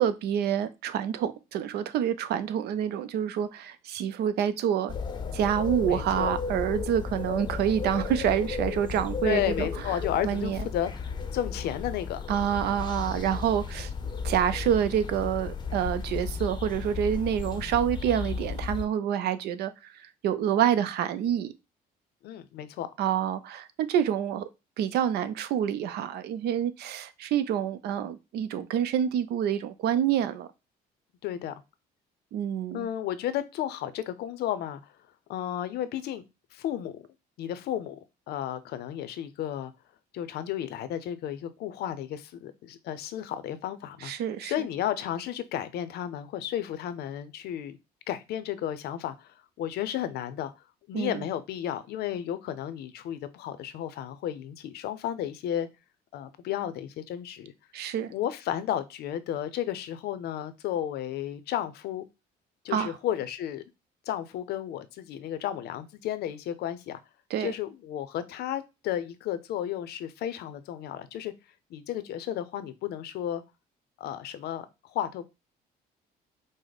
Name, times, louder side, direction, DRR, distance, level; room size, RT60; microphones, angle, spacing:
voice 1, 0.0-4.9 5.3-9.7 10.2-10.7 12.3-13.9 14.2-21.5 23.0-24.5 24.8-30.5 32.3-32.9 44.0-44.5 50.9-51.2 57.7-58.1 62.7-63.0 67.3-67.5, right 9 dB, 75° right, 0.6 m, -27 dB
sound 1, 4.9-18.8, left 5 dB, 25° left, 0.6 m, -34 dB
voice 2, 5.8-6.3 9.2-12.2 22.2-22.9 31.2-31.5 32.7-34.9 35.3-36.2 36.5-37.1 37.4-38.0 38.3-39.7 40.1-44.1 44.4-47.8 48.1-50.5 50.9-55.7 56.1-57.5 58.1-62.0 62.6-63.6 64.1-67.0 67.4-71.3 71.7-73.4 74.0-75.3, left 11 dB, 75° left, 0.6 m, -33 dB
5.0 x 2.1 x 4.0 m
cardioid pair, 110°, 17 cm